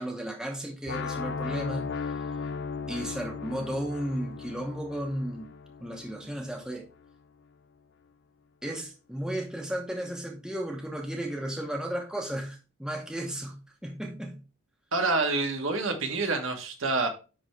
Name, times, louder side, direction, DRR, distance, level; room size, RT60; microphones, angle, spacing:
voice 1, 0.0-1.9 2.9-5.5 5.8-6.9 8.6-14.4, right 1 dB, 5° right, 0.9 m, -34 dB
space hit, 0.9-6.8, left 5 dB, 50° left, 0.4 m, -36 dB
voice 2, 14.9-17.1, right 3 dB, 65° right, 1.3 m, -27 dB
10.0 x 3.4 x 3.2 m
head